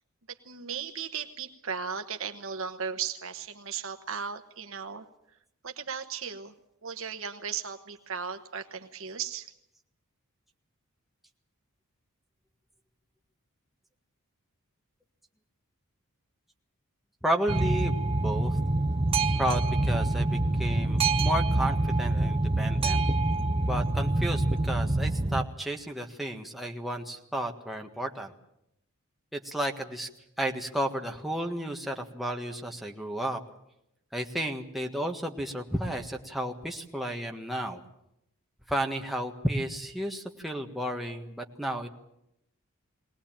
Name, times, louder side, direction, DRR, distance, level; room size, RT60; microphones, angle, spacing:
voice 1, 0.5-5.1 5.6-6.5 6.8-9.5, right 6 dB, 65° right, 5 dB, 1.1 m, -36 dB
voice 2, 17.2-17.9 18.2-18.6 19.3-23.0 23.7-28.3 29.3-30.1 30.4-33.4 34.1-37.8 38.7-41.9, right 1 dB, ahead, 1 dB, 1.6 m, -32 dB
Boat Water vehicle, 17.5-25.4, right 2 dB, 25° right, 0.8 m, -26 dB
22.0 x 18.5 x 8.9 m, 0.82 s
head